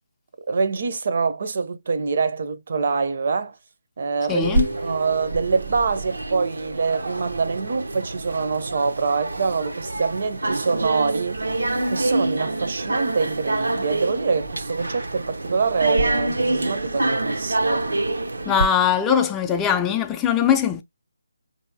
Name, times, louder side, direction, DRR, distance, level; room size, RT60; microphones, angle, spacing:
voice 1, 0.5-3.6 4.0-4.5 4.8-17.9, right 4 dB, 50° right, 0.7 m, -25 dB
voice 2, 4.3-4.7 18.4-20.8, left 8 dB, 10° left, 0.5 m, -21 dB
sound 1, 4.4-18.7, right 2 dB, 90° right, 0.8 m, -26 dB
5.3 x 2.7 x 2.6 m
figure-of-eight pair, 165°, 0 cm